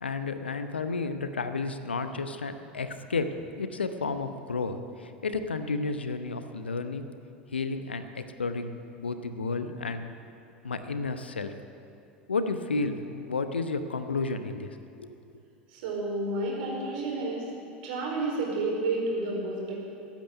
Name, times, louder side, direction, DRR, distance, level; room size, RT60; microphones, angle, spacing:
voice 1, 0.0-7.1 7.5-10.1 10.6-11.5 12.3-15.1, left 3 dB, 80° left, 9 dB, 0.9 m, -32 dB
voice 2, 15.7-17.4 17.8-19.8, right 2 dB, 60° right, -2 dB, 4.6 m, -30 dB
15.0 x 9.2 x 9.2 m, 2.7 s
figure-of-eight pair, 80°, 6 cm